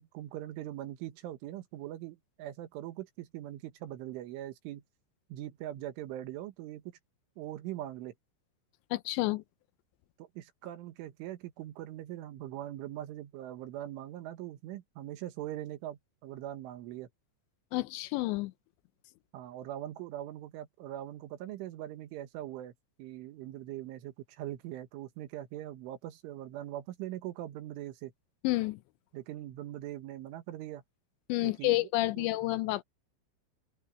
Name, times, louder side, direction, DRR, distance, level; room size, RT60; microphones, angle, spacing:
voice 1, 0.0-4.8 5.3-6.8 7.4-8.1 10.2-17.1 19.3-22.7 23.0-28.1 29.1-30.8 31.4-32.3, right 13 dB, 80° right, 3.8 m, -41 dB
voice 2, 8.9-9.4 17.7-18.5 28.4-28.8 31.3-32.8, left 19 dB, 85° left, 2.6 m, -29 dB
open air
omnidirectional pair, 5.8 m